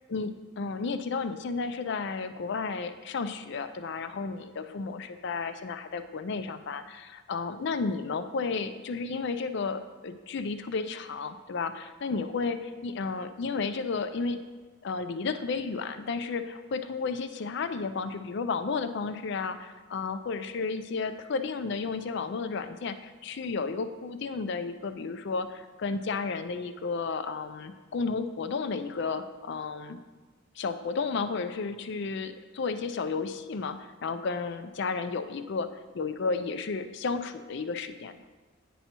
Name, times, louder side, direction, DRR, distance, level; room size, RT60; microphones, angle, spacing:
voice 1, 0.1-14.4 14.8-30.0 30.6-38.1, left 4 dB, 55° left, 10 dB, 0.4 m, -32 dB
9.2 x 5.5 x 2.9 m, 1.3 s
head